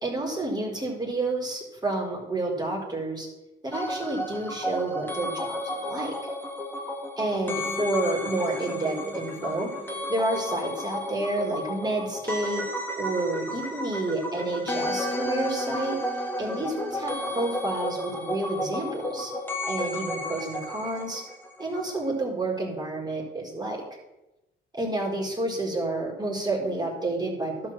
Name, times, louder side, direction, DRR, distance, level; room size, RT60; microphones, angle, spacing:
voice 1, 0.0-3.3 3.6-6.1 7.2-9.7 10.1-12.6 13.0-16.0 16.4-19.3 19.7-21.2 21.6-23.8 24.7-27.5, right 2 dB, 20° right, -1 dB, 4.0 m, -29 dB
sound 1, 3.7-21.8 22.0-22.1, left 1 dB, 10° left, 1.9 m, -33 dB
11.5 x 4.9 x 7.6 m, 0.95 s
cardioid pair, 90°, 20 cm